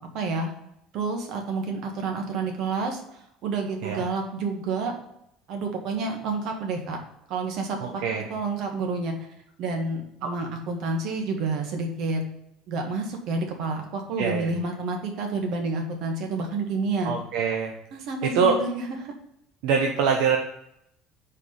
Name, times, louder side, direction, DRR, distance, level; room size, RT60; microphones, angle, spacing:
voice 1, 0.1-0.5 0.9-3.0 3.4-4.9 5.5-7.0 7.3-8.0 8.3-9.2 9.6-12.2 12.7-17.1 17.9-19.1, right 3 dB, 55° right, 3 dB, 1.4 m, -29 dB
voice 2, 7.8-8.3 10.2-10.3 14.2-14.5 17.0-17.7 18.2-18.6 19.6-20.4, right 6 dB, 75° right, 2 dB, 0.8 m, -24 dB
4.8 x 4.5 x 5.4 m, 0.78 s
cardioid pair, 145°, 0 cm